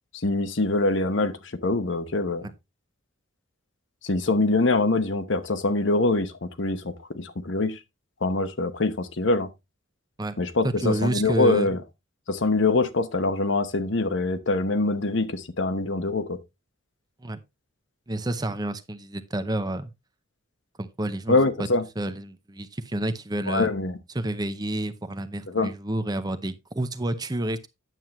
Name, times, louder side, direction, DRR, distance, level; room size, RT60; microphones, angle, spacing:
voice 1, 0.2-2.5 4.0-7.8 8.2-9.5 10.4-11.8 12.3-16.4 21.3-21.9 23.5-24.0 25.5-25.7, left 2 dB, 65° left, 0.9 m, -24 dB
voice 2, 10.6-11.7 17.2-17.4 18.1-19.9 20.8-21.7 22.0-23.7 24.1-27.7, right 1 dB, 20° right, 0.6 m, -29 dB
9.2 x 7.4 x 3.0 m
head